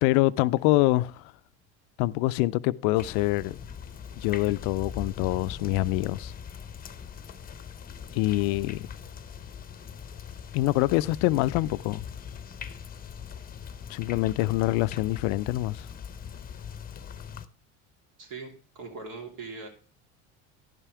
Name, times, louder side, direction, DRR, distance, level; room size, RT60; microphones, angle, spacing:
voice 1, 0.0-1.3 2.0-3.6 4.2-6.3 8.1-8.9 10.5-12.0 13.9-15.9, left 18 dB, 80° left, 0.5 m, -25 dB
sound 1, 2.9-17.5, left 7 dB, 25° left, 0.7 m, -41 dB
voice 2, 18.2-19.7, right 4 dB, 70° right, 3.1 m, -40 dB
11.0 x 5.7 x 4.8 m
supercardioid pair, 95°, 32 cm